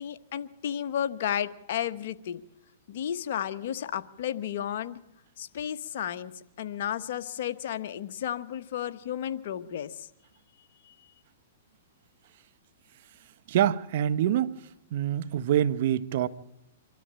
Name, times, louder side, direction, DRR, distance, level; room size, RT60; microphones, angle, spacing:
voice 1, 0.0-2.4 2.9-5.0 5.4-10.1 10.8-10.9, left 10 dB, 60° left, 1.1 m, -33 dB
voice 2, 13.5-14.6 14.9-16.3, right 10 dB, 55° right, 0.9 m, -25 dB
25.5 x 13.0 x 8.8 m
hypercardioid pair, 125°, 0 cm